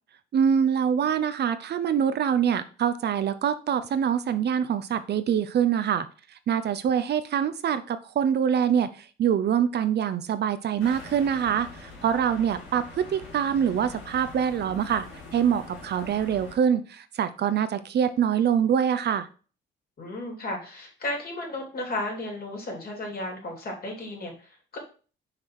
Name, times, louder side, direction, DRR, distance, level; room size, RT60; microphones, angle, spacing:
voice 1, 0.3-6.1 6.5-15.1 15.3-19.3, right 8 dB, 55° right, 12 dB, 0.7 m, -25 dB
sound 1, 10.8-16.6, left 3 dB, 85° left, 3.4 m, -44 dB
voice 2, 20.0-24.8, left 1 dB, 50° left, 0 dB, 3.3 m, -34 dB
5.7 x 4.8 x 4.6 m, 0.38 s
cardioid pair, 90°, 20 cm